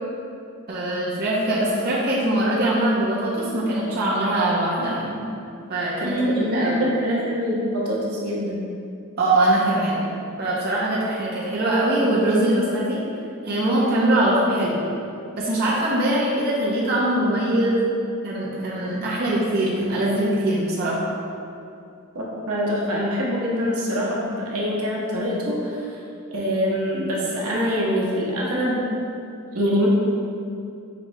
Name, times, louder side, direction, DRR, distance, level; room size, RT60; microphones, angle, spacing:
voice 1, 0.7-5.2 5.7-6.8 9.2-10.1 10.4-13.0 13.4-14.8 15.3-17.9 18.2-21.1, right 1 dB, 45° right, -7 dB, 0.6 m, -22 dB
voice 2, 6.0-8.6 22.1-25.8 26.3-28.9 29.5-29.9, equal, 80° right, -4 dB, 0.9 m, -24 dB
5.1 x 3.1 x 2.6 m, 2.5 s
head